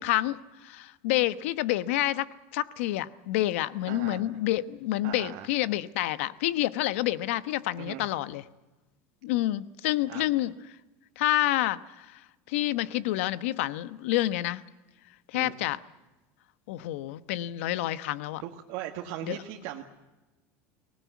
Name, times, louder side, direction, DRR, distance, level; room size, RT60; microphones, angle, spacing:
voice 1, 0.0-8.4 9.2-10.5 11.2-12.2 12.5-14.6 15.3-15.8 16.7-18.4 19.2-19.4, left 15 dB, 85° left, 15 dB, 1.1 m, -28 dB
voice 2, 3.9-4.2 5.0-5.5 7.8-8.0 10.1-10.2 15.3-15.5 18.4-19.8, right 12 dB, 60° right, 2 dB, 1.8 m, -38 dB
24.0 x 19.0 x 9.5 m, 1.1 s
cardioid pair, 165°, 7 cm